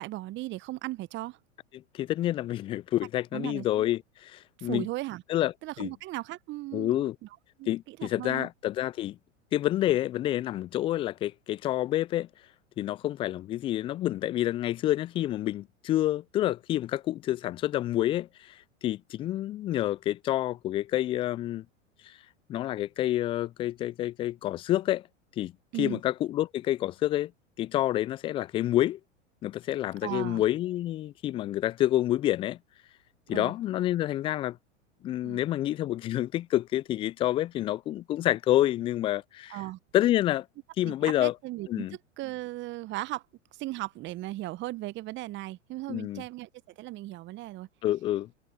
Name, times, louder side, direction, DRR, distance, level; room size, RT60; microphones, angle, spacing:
voice 1, 0.0-1.4 3.3-3.8 4.6-5.2 5.6-7.1 7.6-8.5 25.7-26.0 30.0-30.4 33.3-33.5 35.2-35.4 39.5-39.8 40.8-41.9 42.2-43.2 43.6-46.5 46.8-47.7, right 17 dB, 30° right, 1.0 m, -37 dB
voice 2, 1.7-4.9 5.3-5.9 6.7-7.2 7.7-9.2 9.5-12.3 12.8-21.6 22.0-22.2 22.5-25.1 25.4-25.5 25.8-27.3 27.6-29.0 29.4-32.6 33.3-34.6 35.0-39.6 39.9-40.5 40.8-41.3 41.7-42.0 45.9-46.2 47.8-48.3, left 14 dB, 15° left, 0.3 m, -28 dB
figure-of-eight pair, 95°, 38 cm